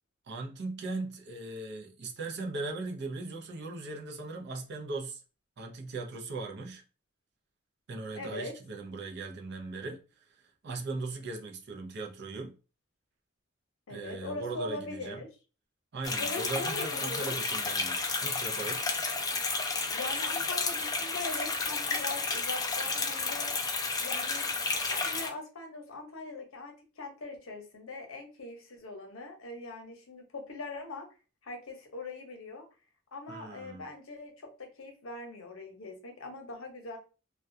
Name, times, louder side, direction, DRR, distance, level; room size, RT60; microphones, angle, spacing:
voice 1, 0.3-5.2 5.6-6.8 7.9-10.0 10.6-12.6 13.9-15.2 15.9-18.9 33.3-33.9, right 3 dB, 55° right, 0.5 m, -38 dB
voice 2, 8.1-8.5 13.9-15.3 16.2-17.4 19.9-23.5 24.0-24.4 24.9-31.1 31.4-32.6 33.1-37.0, left 2 dB, 80° left, 0.8 m, -41 dB
sound 1, 16.0-25.3, left 4 dB, 20° left, 0.3 m, -32 dB
2.3 x 2.2 x 2.5 m
head